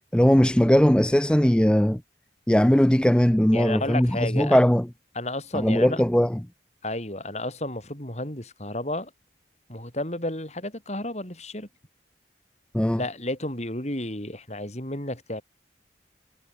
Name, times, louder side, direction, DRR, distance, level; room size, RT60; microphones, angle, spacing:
voice 1, 0.1-2.0 2.5-4.8 5.5-6.3 12.7-13.0, equal, 5° left, 0.5 m, -19 dB
voice 2, 3.5-4.6 5.1-6.0 6.8-9.1 9.7-11.7 13.0-15.4, left 1 dB, 40° left, 6.2 m, -32 dB
head